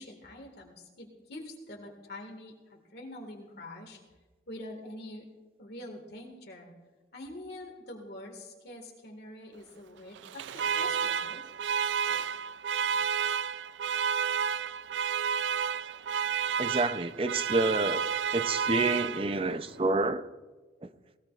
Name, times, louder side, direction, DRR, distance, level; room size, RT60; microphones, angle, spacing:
voice 1, 0.0-4.0 4.5-5.3 5.6-6.7 7.1-11.4, left 1 dB, 60° left, 1 dB, 1.8 m, -45 dB
Alarm, 10.2-19.6, right 7 dB, 80° right, 0.3 m, -31 dB
voice 2, 16.6-18.1 18.3-20.3 20.8-20.9, right 2 dB, 30° right, 11 dB, 0.6 m, -28 dB
18.5 x 18.0 x 2.5 m, 1.3 s
head